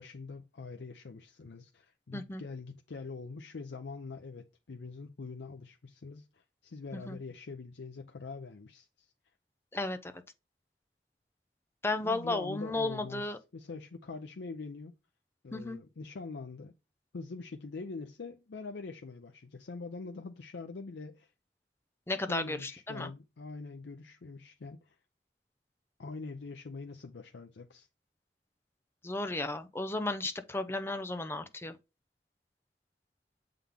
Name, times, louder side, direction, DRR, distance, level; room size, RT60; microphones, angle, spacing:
voice 1, 0.0-9.1 12.0-14.9 15.4-16.7 17.1-21.3 22.3-25.0 26.0-27.9, left 4 dB, 80° left, 0.5 m, -44 dB
voice 2, 2.1-2.4 7.1-7.2 9.7-10.2 11.8-13.4 15.5-15.8 22.1-23.1 29.0-31.8, left 2 dB, 15° left, 0.6 m, -34 dB
7.1 x 3.8 x 3.4 m
head